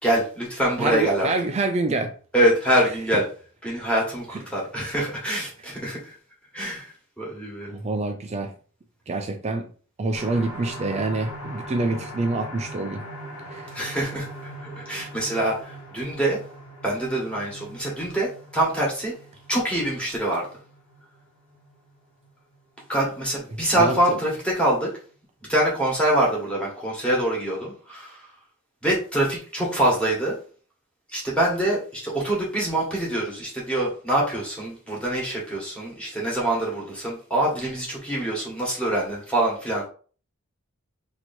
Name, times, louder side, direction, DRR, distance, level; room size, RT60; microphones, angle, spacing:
voice 1, 0.0-1.3 2.3-3.2 3.6-6.1 6.5-6.9 7.2-7.7 13.7-14.3 14.6-16.4 16.8-19.1 19.5-20.5 22.9-24.9 25.5-28.2 28.8-30.3 31.1-39.8, right 1 dB, 5° left, 1.5 m, -24 dB
voice 2, 0.8-2.1 3.1-3.2 7.7-8.5 9.1-9.7 10.0-13.0 13.5-13.7 23.5-24.2, right 3 dB, 30° right, 0.4 m, -27 dB
sound 1, 10.1-23.6 24.1-24.2 24.6-24.7, equal, 70° left, 1.2 m, -41 dB
3.0 x 2.9 x 4.2 m
head